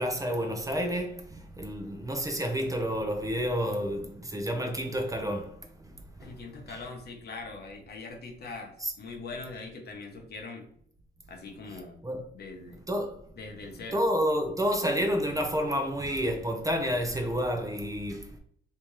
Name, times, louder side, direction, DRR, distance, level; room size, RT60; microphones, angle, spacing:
voice 1, 0.0-5.7 6.2-6.3 6.7-6.8 8.8-8.9 12.0-12.2 12.9-13.2 13.9-18.4, equal, 15° right, 0.6 m, -30 dB
voice 2, 6.2-10.7 11.3-12.0 12.3-12.8 13.3-14.0, left 3 dB, 55° left, 0.9 m, -42 dB
3.5 x 2.8 x 3.1 m
cardioid pair, 90°, 20 cm